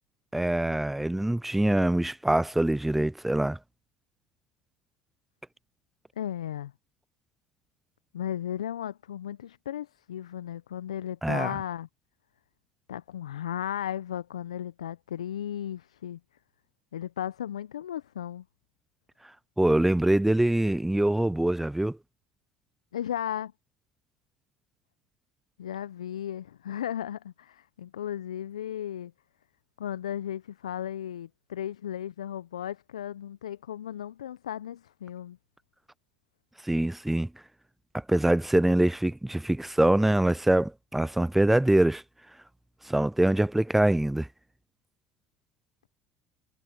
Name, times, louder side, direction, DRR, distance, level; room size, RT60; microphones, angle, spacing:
voice 1, 0.3-3.6 11.2-11.6 19.6-22.0 36.6-37.3 38.1-42.0 42.9-44.3, right 1 dB, 5° right, 0.4 m, -24 dB
voice 2, 6.2-6.7 8.1-11.9 12.9-16.2 16.9-18.4 22.9-23.5 25.6-29.1 29.8-35.4, left 10 dB, 80° left, 0.9 m, -35 dB
figure-of-eight pair, 65°, 3 cm